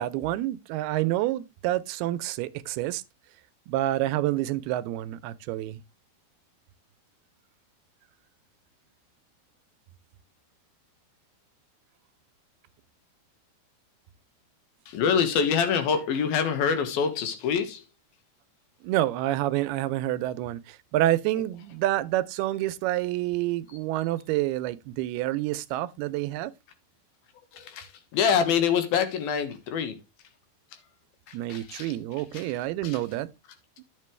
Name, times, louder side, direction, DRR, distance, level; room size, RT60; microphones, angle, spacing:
voice 1, 0.0-3.0 3.7-5.8 18.8-26.5 31.3-33.3 33.8-33.9, right 15 dB, 85° right, 2.6 m, -28 dB
voice 2, 14.9-17.8 27.5-30.0 31.3-31.9 32.3-32.5 32.8-33.0, left 7 dB, 75° left, 3.2 m, -26 dB
11.5 x 7.5 x 3.2 m
omnidirectional pair, 4.5 m